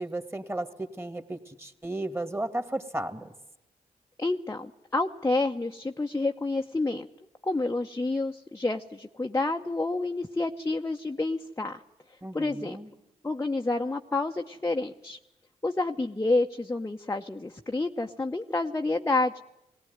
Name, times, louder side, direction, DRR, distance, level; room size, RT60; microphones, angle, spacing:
voice 1, 0.0-3.3 12.2-12.9, right 1 dB, 15° right, 9 dB, 2.4 m, -34 dB
voice 2, 4.2-7.1 7.4-11.8 12.3-12.8 13.2-15.2 15.6-19.4, left 2 dB, 20° left, 3 dB, 1.0 m, -29 dB
18.0 x 17.5 x 9.5 m, 0.90 s
supercardioid pair, 50°, 15 cm